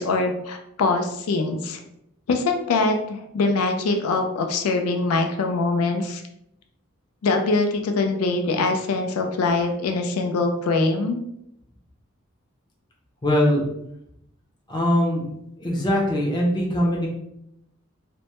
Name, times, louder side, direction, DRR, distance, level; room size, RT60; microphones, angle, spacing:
voice 1, 0.0-1.8 2.3-6.2 7.2-11.2, left 3 dB, 90° left, 4 dB, 0.4 m, -23 dB
voice 2, 13.2-13.6 14.7-15.3 15.6-17.1, left 1 dB, 20° left, -2 dB, 0.4 m, -21 dB
2.1 x 2.0 x 2.8 m, 0.78 s
head